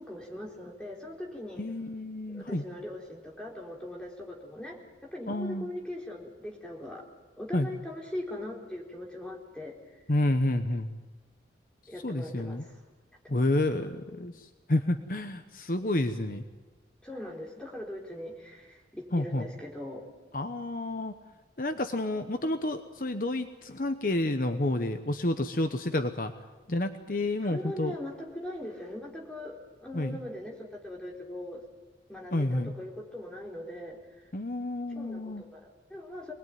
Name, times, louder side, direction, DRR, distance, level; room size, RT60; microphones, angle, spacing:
voice 1, 0.0-1.6 2.3-4.8 5.1-7.0 7.4-9.7 11.9-12.8 13.3-13.4 13.8-13.9 17.0-20.0 27.4-31.6 32.1-34.0 34.9-36.3, left 1 dB, 5° left, -2 dB, 4.1 m, -40 dB
voice 2, 1.6-2.6 5.3-5.7 7.5-7.7 10.1-10.9 12.0-12.6 13.3-16.4 19.1-19.5 20.3-21.2 21.6-26.3 26.7-27.9 29.9-30.2 32.3-32.7 34.3-35.4, left 1 dB, 50° left, 7 dB, 1.0 m, -30 dB
25.0 x 20.5 x 9.3 m, 1.2 s
head